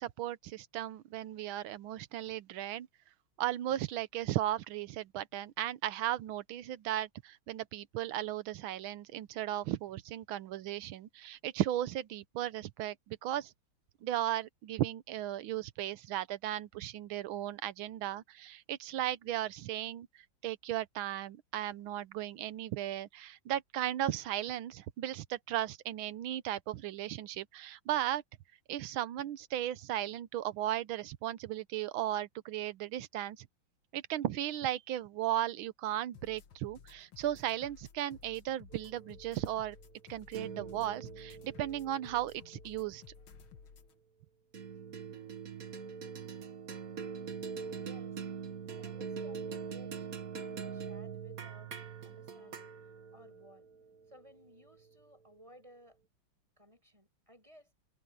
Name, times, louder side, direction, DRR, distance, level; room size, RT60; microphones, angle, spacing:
voice 1, 0.0-2.9 3.4-13.5 14.0-20.1 20.4-28.2 28.7-33.5 33.9-39.8 40.1-43.0, right 13 dB, 90° right, 1.6 m, -36 dB
sound 1, 36.1-43.9, left 6 dB, 80° left, 2.3 m, -56 dB
sound 2, 38.7-43.4 44.5-55.0, right 6 dB, 45° right, 1.8 m, -44 dB
voice 2, 47.7-48.2 48.7-51.7 52.0-52.7 53.1-53.7 54.1-56.0 56.6-57.7, equal, 15° right, 7.3 m, -58 dB
omnidirectional pair, 2.2 m